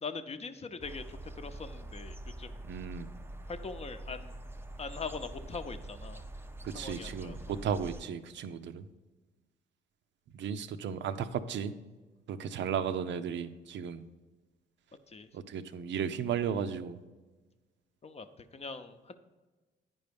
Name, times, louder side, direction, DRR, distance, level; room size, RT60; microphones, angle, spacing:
voice 1, 0.0-2.6 3.5-4.3 4.8-6.2 6.7-7.4 15.1-15.3 18.0-19.1, left 4 dB, 30° left, 8 dB, 0.7 m, -42 dB
sound 1, 0.8-8.0, right 1 dB, 10° right, 0.5 m, -45 dB
voice 2, 2.7-3.1 6.7-8.9 10.3-11.7 12.3-14.1 15.3-17.0, right 7 dB, 65° right, 11 dB, 0.6 m, -35 dB
9.4 x 5.4 x 5.2 m, 1.2 s
cardioid pair, 90°, 20 cm